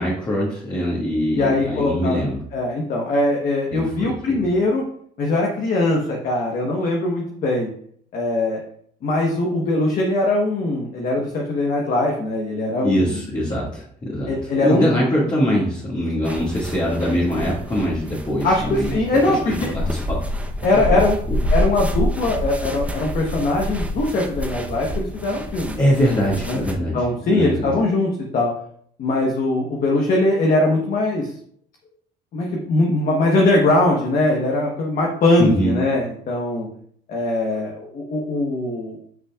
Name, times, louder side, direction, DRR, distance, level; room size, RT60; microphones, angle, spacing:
voice 1, 0.0-2.4 3.7-4.5 12.8-14.4 14.6-18.9 19.2-20.2 20.8-21.0 21.3-21.4 25.8-27.0 27.3-27.7 35.4-35.7, equal, 25° left, -6 dB, 2.0 m, -22 dB
voice 2, 1.3-2.2 2.5-4.8 5.2-7.7 8.1-8.6 9.0-13.2 14.3-14.9 18.4-19.7 20.6-21.2 21.5-25.8 26.5-28.5 29.0-31.3 32.3-36.7 37.1-39.1, left 2 dB, 55° left, -1 dB, 1.2 m, -21 dB
sound 1, 16.2-26.7, equal, 10° right, 0.9 m, -27 dB
9.2 x 5.7 x 2.4 m, 0.63 s
cardioid pair, 110°, 17 cm